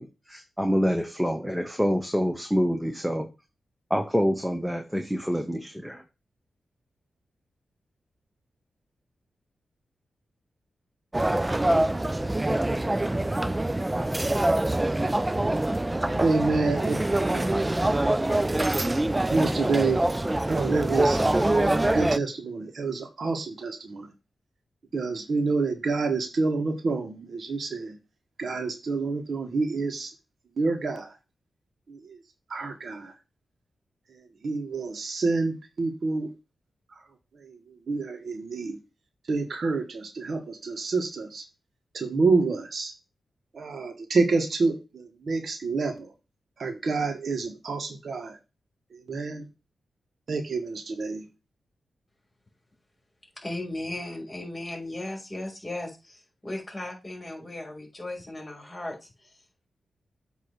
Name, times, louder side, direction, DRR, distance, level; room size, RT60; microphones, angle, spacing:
voice 1, 0.0-3.3 3.9-6.0 16.1-16.2, equal, ahead, 5 dB, 1.0 m, -27 dB
sound 1, 11.1-22.2, right 1 dB, 20° right, 0.4 m, -25 dB
voice 2, 16.2-17.6 19.3-20.0 20.5-24.1 24.9-28.0 28.4-30.1 30.6-31.1 31.9-32.2 32.5-33.1 34.4-36.3 37.4-37.6 37.9-38.8 39.3-41.4 41.9-42.9 43.5-46.1 46.6-48.4 48.9-49.5 50.3-51.2, right 3 dB, 65° right, 6 dB, 1.4 m, -28 dB
voice 3, 53.4-59.3, left 1 dB, 25° left, 1 dB, 3.8 m, -36 dB
8.0 x 3.0 x 6.3 m, 0.28 s
cardioid pair, 50°, 0 cm